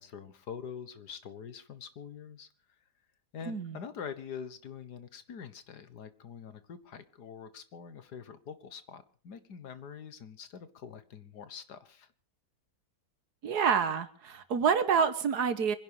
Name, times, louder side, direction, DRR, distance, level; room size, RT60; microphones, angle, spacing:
voice 1, 0.0-2.5 3.3-12.1, left 7 dB, 80° left, 12 dB, 2.0 m, -45 dB
voice 2, 3.5-3.8 13.4-15.8, right 6 dB, 75° right, 11 dB, 1.8 m, -27 dB
25.0 x 11.0 x 4.8 m, 0.42 s
omnidirectional pair, 1.7 m